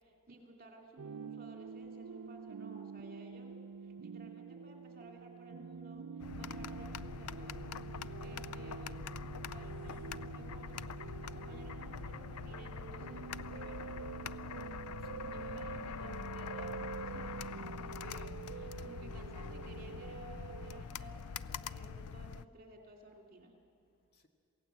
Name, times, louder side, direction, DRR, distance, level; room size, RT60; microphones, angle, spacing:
voice 1, 0.0-3.5 3.8-6.0 6.3-10.9 11.2-14.1 15.2-23.5, right 1 dB, 40° right, 2.7 m, -55 dB
sound 1, 1.0-20.8, right 5 dB, 85° right, 0.5 m, -46 dB
sound 2, 6.2-22.4, left 7 dB, 80° left, 0.5 m, -44 dB
sound 3, 9.4-11.3, right 1 dB, 10° right, 5.6 m, -71 dB
voice 2, 14.4-15.3 23.7-24.3, left 1 dB, 45° left, 2.0 m, -72 dB
27.0 x 16.5 x 7.6 m
head